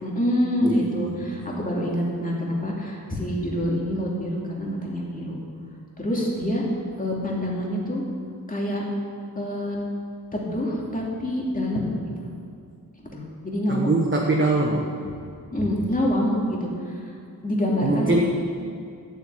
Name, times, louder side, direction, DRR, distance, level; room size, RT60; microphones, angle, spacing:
voice 1, 0.0-5.4 6.0-6.6 7.0-8.0 8.5-8.8 9.4-9.8 10.3-12.2 13.1-14.1 15.5-17.1 17.4-18.3, equal, 25° left, -3 dB, 2.7 m, -26 dB
voice 2, 0.6-1.2 13.7-14.9 17.8-18.3, right 2 dB, 35° right, 0 dB, 1.2 m, -23 dB
12.0 x 8.1 x 8.5 m, 2.3 s
wide cardioid pair, 130°, 35 cm